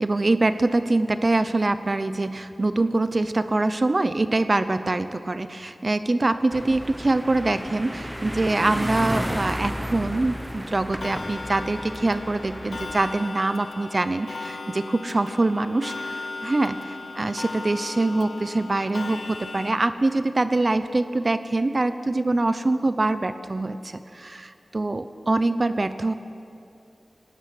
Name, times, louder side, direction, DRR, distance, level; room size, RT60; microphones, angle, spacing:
voice 1, 0.0-26.1, right 2 dB, 40° right, 11 dB, 0.7 m, -24 dB
sound 1, 6.5-13.2, equal, 5° right, 0.8 m, -33 dB
Clock, 11.0-19.7, left 3 dB, 75° left, 0.8 m, -37 dB
19.0 x 17.5 x 9.5 m, 2.6 s
wide cardioid pair, 90°, 0 cm